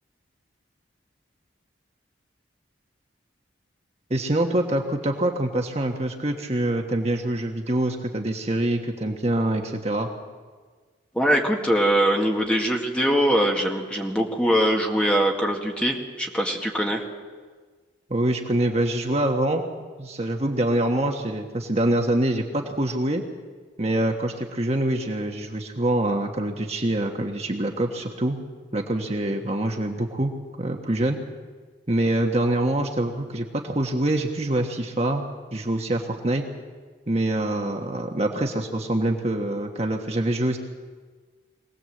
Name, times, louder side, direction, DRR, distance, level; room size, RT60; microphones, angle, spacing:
voice 1, 4.1-10.1 18.1-19.6 20.0-23.2 23.8-28.4 28.7-30.3 30.6-31.2 31.9-36.4 37.1-40.6, right 1 dB, 35° right, 3 dB, 1.3 m, -25 dB
voice 2, 11.1-17.0, equal, 5° left, 0 dB, 2.0 m, -22 dB
23.0 x 18.0 x 7.8 m, 1.5 s
head